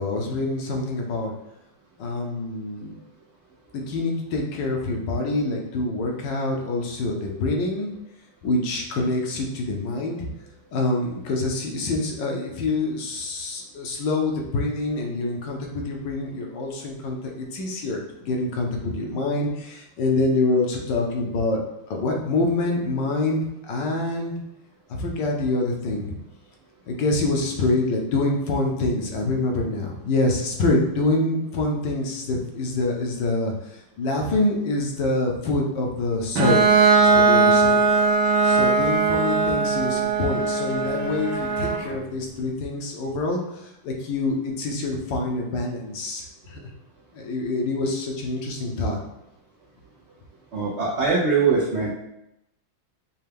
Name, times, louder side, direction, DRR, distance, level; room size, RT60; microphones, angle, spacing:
voice 1, 0.0-1.3 2.0-2.9 3.7-7.9 8.4-10.3 10.7-21.6 21.9-24.3 24.9-26.1 26.9-36.7 37.0-37.8 38.4-46.7 47.1-49.0, left 2 dB, 70° left, 0 dB, 1.4 m, -26 dB
Bowed string instrument, 36.4-42.0, right 4 dB, 70° right, 1.1 m, -19 dB
voice 2, 50.5-51.9, right 4 dB, 90° right, -4 dB, 0.6 m, -22 dB
5.5 x 2.3 x 3.4 m, 0.84 s
omnidirectional pair, 2.1 m